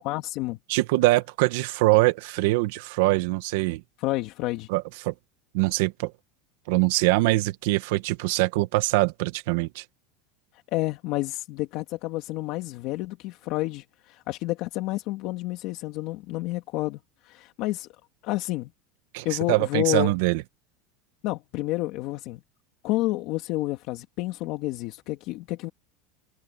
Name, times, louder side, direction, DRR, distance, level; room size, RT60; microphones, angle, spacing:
voice 1, 0.0-0.6 4.0-4.7 10.7-17.9 18.2-18.7 19.2-20.1 21.2-22.4 22.8-25.7, left 18 dB, 55° left, 2.3 m, -30 dB
voice 2, 0.7-3.8 4.7-5.1 5.5-6.1 6.7-9.8 19.1-20.4, right 20 dB, 70° right, 1.5 m, -23 dB
open air
supercardioid pair, 140°, 0 cm